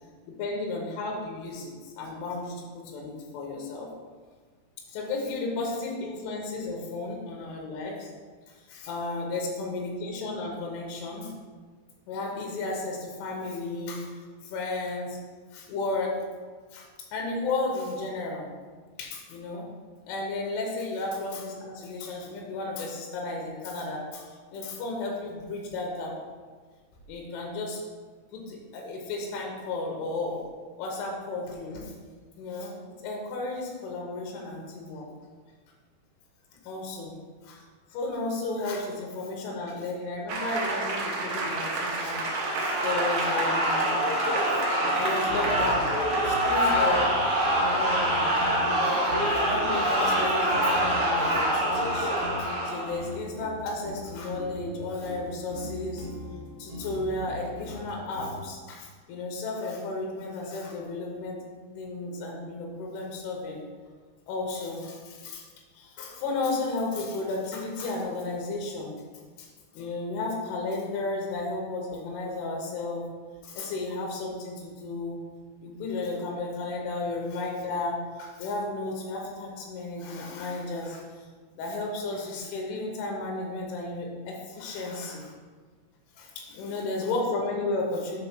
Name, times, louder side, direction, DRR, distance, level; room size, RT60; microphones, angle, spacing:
voice 1, 0.4-3.9 4.9-8.1 8.5-11.3 12.1-14.1 14.4-15.2 15.5-16.1 16.7-18.5 19.0-19.7 20.1-26.1 27.1-27.8 28.3-30.4 30.8-31.9 32.4-32.7 33.0-35.1 36.6-37.1 37.4-37.6 37.9-42.2 42.5-43.9 44.5-44.6 44.9-45.9 46.2-47.1 47.6-48.3 48.6-49.0 49.3-56.1 56.6-61.4 61.8-63.6 64.3-65.4 65.8-68.9 69.4-69.5 69.7-73.1 73.4-75.2 75.6-81.3 81.6-85.3 86.2-88.2, left 2 dB, 90° left, -1 dB, 3.6 m, -33 dB
sound 1, 40.3-47.4, right 3 dB, 90° right, 1.7 m, -32 dB
sound 2, 42.1-53.0, equal, 45° right, 0.7 m, -25 dB
sound 3, 44.8-58.4, left 1 dB, 65° right, 1.5 m, -41 dB
7.6 x 3.7 x 6.0 m, 1.5 s
omnidirectional pair, 5.3 m